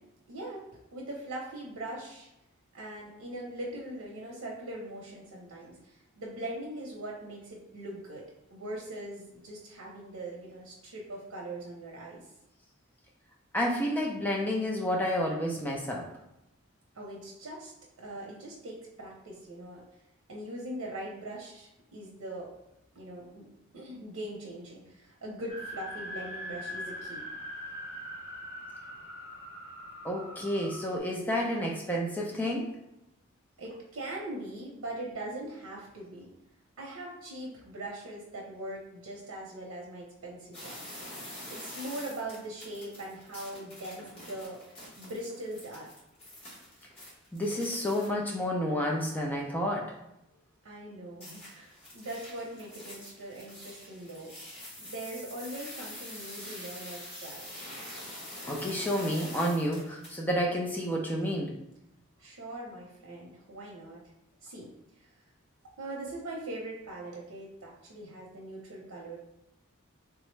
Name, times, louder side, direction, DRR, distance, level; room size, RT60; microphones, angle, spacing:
voice 1, 0.3-0.6 0.9-2.3 2.7-12.2 16.9-19.8 20.3-22.5 22.9-23.5 23.7-27.2 33.6-36.3 36.8-40.8 41.1-41.2 41.5-45.9 50.6-54.3 54.8-57.5 62.2-64.0 64.4-64.7 65.0-65.1 65.8-69.2, right 1 dB, 85° right, -2 dB, 0.7 m, -41 dB
voice 2, 13.5-16.1 30.0-32.7 47.3-49.9 58.5-61.5, equal, 10° left, -1 dB, 0.4 m, -30 dB
sound 1, 25.5-31.0, equal, 60° left, 0.8 m, -42 dB
sound 2, 40.5-48.1 51.2-60.2, left 1 dB, 25° left, 1.1 m, -45 dB
3.5 x 2.0 x 3.1 m, 0.87 s
head